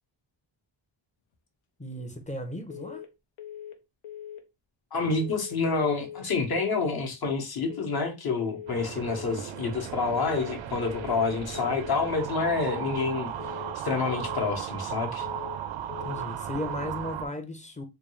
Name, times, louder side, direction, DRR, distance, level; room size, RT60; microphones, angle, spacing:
voice 1, 1.8-3.0 16.0-17.8, left 1 dB, 15° left, 0.6 m, -35 dB
sound 1, 2.7-3.1 3.4-3.8 4.0-4.4 5.2-5.6 5.9-6.3 6.5-6.9 7.7-8.1 8.4-8.8 9.0-9.4 10.2-10.6 10.9-11.3 11.5-11.9 12.7-13.1 13.4-13.8 14.0-14.4 15.2-15.6 15.9-16.3 16.5-16.9, left 10 dB, 85° left, 0.8 m, -41 dB
voice 2, 4.9-13.3 13.7-15.3, left 4 dB, 50° left, 1.0 m, -28 dB
sound 2, 8.7-17.3, right 10 dB, 75° right, 0.5 m, -36 dB
3.5 x 2.3 x 3.1 m
cardioid pair, 90°, 47 cm